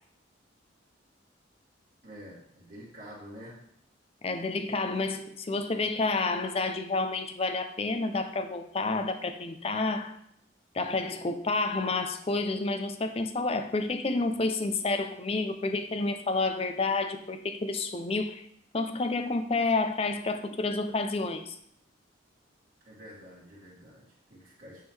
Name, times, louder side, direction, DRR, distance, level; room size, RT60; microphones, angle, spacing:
voice 1, 2.0-3.6 22.8-24.9, equal, 45° right, 2.3 m, -48 dB
voice 2, 4.2-10.1 10.7-18.4 18.7-21.6, left 3 dB, 30° left, 0.4 m, -29 dB
8.9 x 3.7 x 3.2 m
head